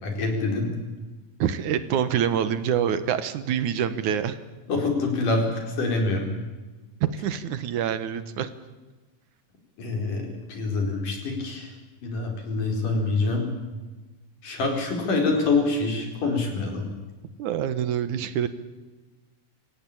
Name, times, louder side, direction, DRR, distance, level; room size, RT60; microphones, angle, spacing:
voice 1, 0.0-0.7 4.7-6.3 9.8-11.7 12.0-13.5 14.4-16.9, left 3 dB, 75° left, 3 dB, 6.0 m, -26 dB
voice 2, 1.4-4.4 7.0-8.5 17.4-18.5, right 9 dB, 70° right, 12 dB, 2.5 m, -26 dB
27.0 x 16.0 x 8.6 m, 1.2 s
omnidirectional pair, 3.8 m